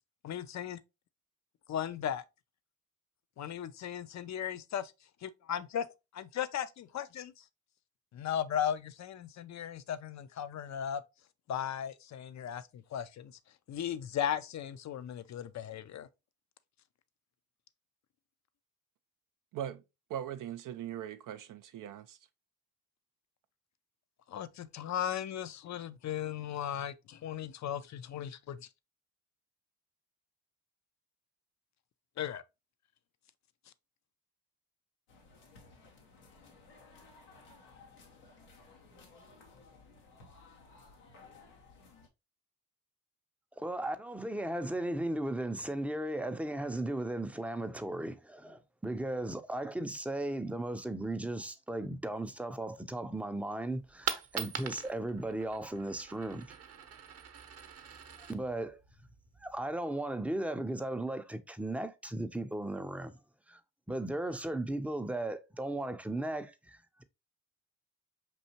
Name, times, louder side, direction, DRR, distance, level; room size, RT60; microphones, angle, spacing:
voice 1, 0.2-0.8 1.7-2.2 3.4-4.9 5.2-5.9 6.1-7.4 8.1-11.0 11.5-13.4 13.7-16.1 24.3-28.7 32.2-32.4, left 9 dB, 45° left, 0.5 m, -36 dB
voice 2, 20.1-22.2, right 10 dB, 55° right, 0.4 m, -40 dB
sound 1, 35.1-42.1, left 3 dB, 90° left, 1.0 m, -57 dB
voice 3, 43.6-56.5 58.2-58.8 59.4-63.2 63.5-63.6 63.9-67.0, right 1 dB, 5° right, 0.5 m, -36 dB
Coin (dropping), 53.7-59.7, right 7 dB, 40° right, 0.8 m, -43 dB
5.4 x 2.7 x 2.8 m
hypercardioid pair, 50°, 40 cm